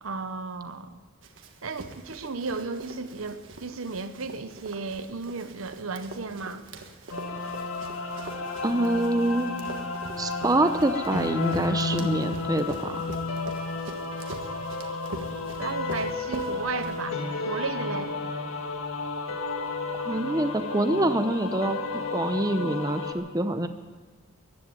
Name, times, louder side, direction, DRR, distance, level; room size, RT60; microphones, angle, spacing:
voice 1, 0.0-1.0 1.6-6.6 15.6-17.2 17.5-18.1, right 4 dB, 80° right, 10 dB, 0.9 m, -34 dB
Run, 1.2-17.4, right 2 dB, 65° right, 1.5 m, -43 dB
sound 1, 7.1-23.1, left 3 dB, 80° left, 1.7 m, -32 dB
voice 2, 8.6-9.5 10.2-13.1 20.0-21.8 22.1-23.7, right 1 dB, 20° right, 8 dB, 0.7 m, -26 dB
15.0 x 11.0 x 9.0 m, 1.4 s
head